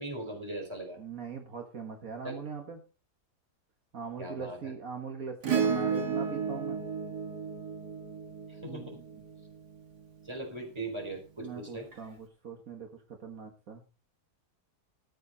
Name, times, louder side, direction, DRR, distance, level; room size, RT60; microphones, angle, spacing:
voice 1, 0.0-1.0 2.2-2.4 4.2-4.7 8.6-9.0 10.2-11.9, right 2 dB, 15° right, 3 dB, 4.5 m, -39 dB
voice 2, 1.0-2.8 3.9-6.8 8.7-8.9 11.4-13.8, right 6 dB, 60° right, 3 dB, 2.1 m, -41 dB
Acoustic guitar / Strum, 5.4-10.0 11.9-12.0, right 6 dB, 90° right, 2.6 m, -33 dB
13.5 x 10.0 x 4.1 m, 0.33 s
omnidirectional pair, 1.7 m